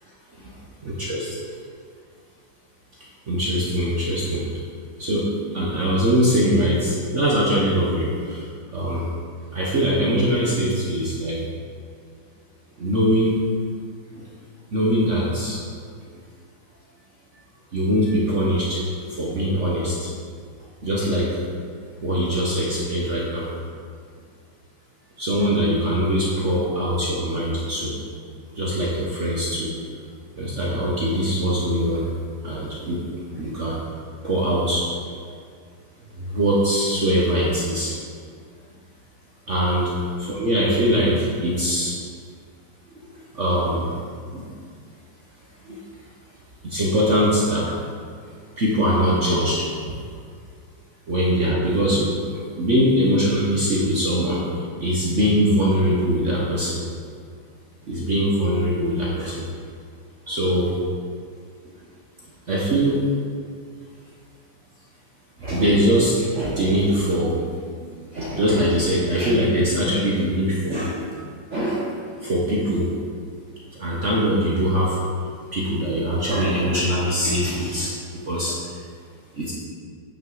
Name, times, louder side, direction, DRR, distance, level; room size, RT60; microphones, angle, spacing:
voice 1, 0.4-1.4 3.3-4.4 5.0-8.4 8.7-9.0 9.5-11.4 12.8-13.4 14.1-14.3 14.7-15.6 17.7-18.8 19.1-20.1 20.8-21.4 22.0-23.5 25.2-27.9 28.6-29.7 30.4-32.0 32.4-33.0 33.3-33.8 34.2-34.9 35.2-35.3 36.1-37.9 39.5-41.9 43.3-43.9 44.3-44.5 45.6-45.8 46.6-47.7 48.6-49.7 51.1-54.4 54.8-56.8 57.9-59.5 60.3-60.8 62.5-63.0 65.4-67.4 67.8-71.1 71.5-71.9 72.2-72.9 73.7-75.0 75.5-78.6 79.3-79.5, equal, 45° right, -6 dB, 1.0 m, -22 dB
9.0 x 5.7 x 3.9 m, 2.1 s
omnidirectional pair, 2.4 m